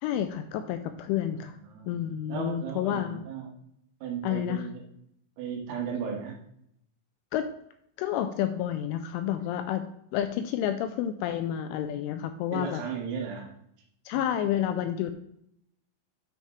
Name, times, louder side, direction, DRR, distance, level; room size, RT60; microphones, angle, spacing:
voice 1, 0.0-1.6 1.9-3.2 4.2-4.6 7.3-7.5 8.0-12.8 14.1-15.2, left 10 dB, 85° left, 8 dB, 2.8 m, -30 dB
voice 2, 1.4-3.5 4.0-4.8 5.4-6.4 12.5-13.5 14.1-14.2, right 6 dB, 90° right, 0 dB, 4.4 m, -36 dB
9.6 x 6.3 x 3.2 m, 0.74 s
omnidirectional pair, 5.9 m